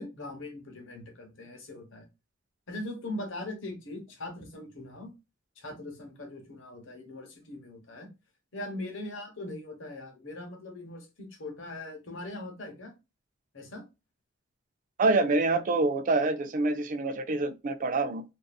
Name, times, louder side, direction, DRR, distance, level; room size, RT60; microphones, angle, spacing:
voice 1, 0.0-2.1 2.7-5.1 5.6-8.1 8.5-12.9 13.5-13.8, left 2 dB, 65° left, 1.0 m, -40 dB
voice 2, 15.0-18.2, right 3 dB, 40° right, 0.4 m, -26 dB
2.6 x 2.6 x 2.2 m
head